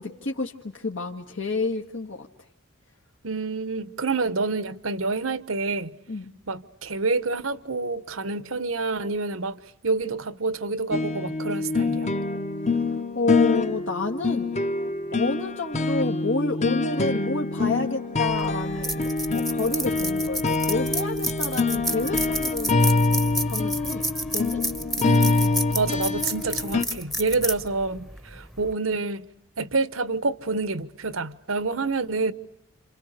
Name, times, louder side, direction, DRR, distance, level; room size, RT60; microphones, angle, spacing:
voice 1, 0.0-2.3 6.1-6.3 12.7-14.5 15.1-23.1 23.4-24.7, left 3 dB, 70° left, 1.8 m, -29 dB
voice 2, 3.2-5.9 6.5-12.1 25.0-29.3 29.6-32.3, right 3 dB, 80° right, 1.2 m, -28 dB
sound 1, 10.9-26.8, left 3 dB, 35° left, 1.0 m, -25 dB
sound 2, 18.3-28.7, equal, ahead, 1.0 m, -31 dB
29.5 x 28.0 x 6.7 m
head